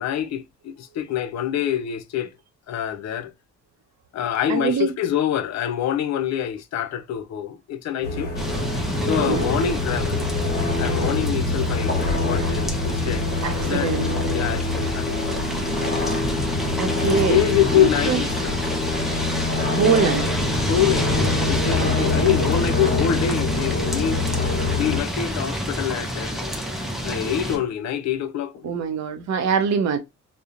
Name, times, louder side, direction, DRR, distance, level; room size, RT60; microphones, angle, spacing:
voice 1, 0.0-2.3 2.7-3.3 4.1-8.3 9.0-10.3 10.8-13.9 14.3-15.2 17.0-18.6 20.7-24.2 24.8-26.6 27.0-28.8, left 10 dB, 65° left, 0.5 m, -25 dB
voice 2, 4.5-4.9 9.2-9.4 13.4-14.1 16.7-17.4 17.7-18.2 19.7-20.3 28.6-30.0, right 6 dB, 65° right, 0.6 m, -23 dB
sound 1, 8.0-25.0, left 3 dB, 30° left, 1.1 m, -25 dB
sound 2, 8.4-27.6, equal, ahead, 0.6 m, -28 dB
2.8 x 2.1 x 2.4 m
cardioid pair, 90°, 30 cm